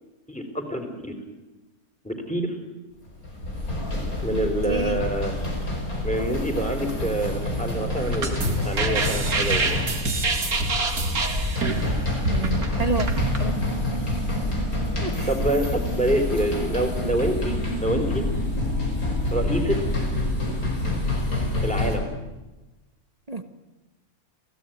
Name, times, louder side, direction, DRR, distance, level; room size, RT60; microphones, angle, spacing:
voice 1, 0.3-1.1 2.0-2.6 4.2-5.4 6.0-9.8 15.3-18.2 19.3-19.8 21.6-22.1, right 1 dB, 5° left, 6 dB, 3.8 m, -26 dB
sound 1, 3.1-22.0, left 1 dB, 70° left, 5.5 m, -27 dB
voice 2, 4.7-5.0 12.3-13.1 13.4-13.6 15.0-15.3 23.3-23.4, right 3 dB, 25° right, 9 dB, 1.3 m, -29 dB
sound 2, 8.0-13.4, right 3 dB, 75° right, 2.7 m, -26 dB
27.5 x 17.0 x 9.2 m, 1.1 s
omnidirectional pair, 1.6 m